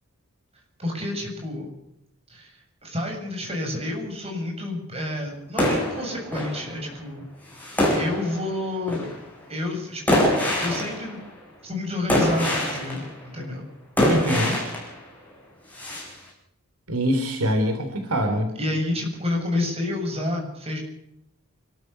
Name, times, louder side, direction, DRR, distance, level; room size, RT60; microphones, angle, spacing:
voice 1, 0.8-1.7 2.3-7.3 8.0-9.2 9.5-11.2 11.6-13.1 13.3-13.6 18.6-20.8, left 1 dB, 25° right, 1 dB, 7.6 m, -29 dB
sound 1, 5.6-6.9 7.5-8.5 8.9-9.2 10.1-11.3 12.1-13.2 14.0-15.0 15.7-16.1, equal, 5° left, 5.7 m, -24 dB
voice 2, 14.1-14.6 16.9-18.5, equal, 75° right, 6 dB, 3.6 m, -24 dB
28.5 x 13.0 x 6.9 m, 0.80 s
head